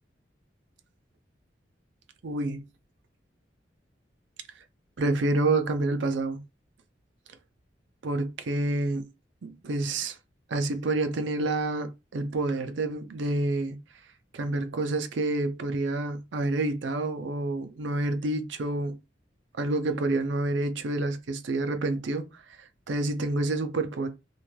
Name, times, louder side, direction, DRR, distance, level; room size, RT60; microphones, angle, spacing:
voice 1, 2.2-2.6 5.0-6.4 8.0-9.1 9.4-10.2 10.5-13.8 14.3-19.0 19.6-22.3 22.9-24.1, right 2 dB, 80° right, 0.5 m, -28 dB
2.5 x 2.2 x 3.1 m
head